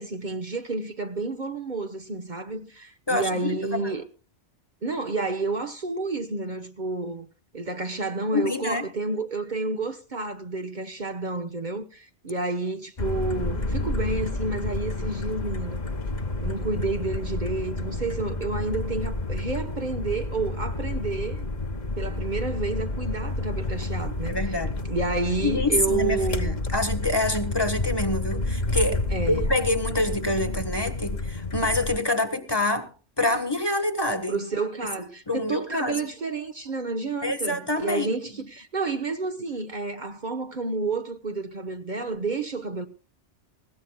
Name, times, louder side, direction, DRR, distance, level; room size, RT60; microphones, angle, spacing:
voice 1, 0.0-4.1 4.8-7.3 7.5-15.8 16.4-21.4 22.0-24.6 24.8-26.5 29.1-29.5 34.3-42.9, right 3 dB, 45° right, 1.1 m, -30 dB
voice 2, 3.1-3.9 8.3-8.8 24.3-24.8 25.4-32.9 33.2-34.4 35.3-36.1 37.2-38.3, left 2 dB, 20° left, 1.4 m, -26 dB
sound 1, 13.0-32.0, left 2 dB, 40° left, 1.5 m, -30 dB
20.5 x 17.0 x 2.3 m
omnidirectional pair, 1.2 m